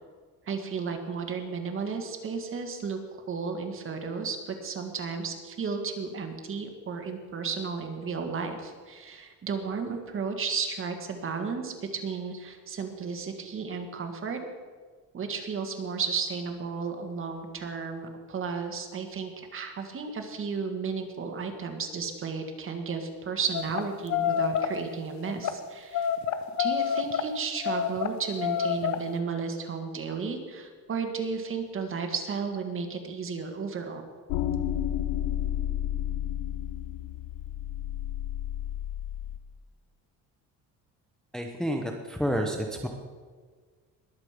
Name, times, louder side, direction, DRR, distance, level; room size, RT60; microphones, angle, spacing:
voice 1, 0.5-3.0 3.3-14.4 15.1-26.1 26.6-34.0, right 5 dB, 35° right, 5 dB, 1.8 m, -33 dB
sound 1, 23.5-23.8 24.1-24.7 25.3-25.5 25.9-27.2 27.6-29.0, left 9 dB, 50° left, 1.0 m, -27 dB
sound 2, 34.3-39.4, left 11 dB, 85° left, 0.7 m, -31 dB
voice 2, 41.3-42.9, equal, ahead, 2 dB, 0.9 m, -29 dB
21.0 x 7.6 x 5.1 m, 1.5 s
cardioid pair, 140°, 35 cm